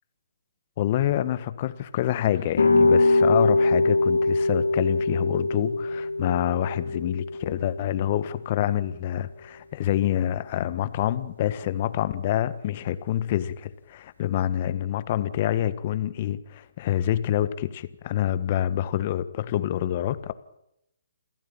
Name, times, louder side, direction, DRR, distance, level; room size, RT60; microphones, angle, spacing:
voice 1, 0.8-20.3, left 11 dB, 40° left, 1.6 m, -27 dB
sound 1, 2.5-8.3, left 2 dB, 75° left, 4.7 m, -23 dB
28.0 x 15.0 x 8.9 m
hypercardioid pair, 140°, 0 cm